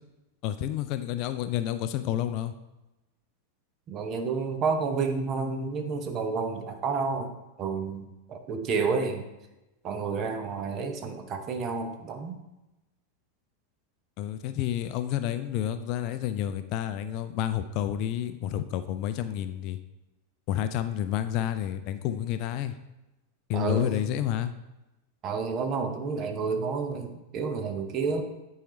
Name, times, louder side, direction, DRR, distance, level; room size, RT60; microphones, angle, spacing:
voice 1, 0.4-2.5 14.2-19.8 20.5-22.7 23.5-24.5, left 11 dB, 40° left, 11 dB, 0.4 m, -30 dB
voice 2, 3.9-9.3 9.8-12.4 23.5-23.9 25.2-28.2, right 5 dB, 30° right, 6 dB, 0.9 m, -30 dB
9.8 x 4.8 x 3.2 m, 0.99 s
figure-of-eight pair, 90°, 0 cm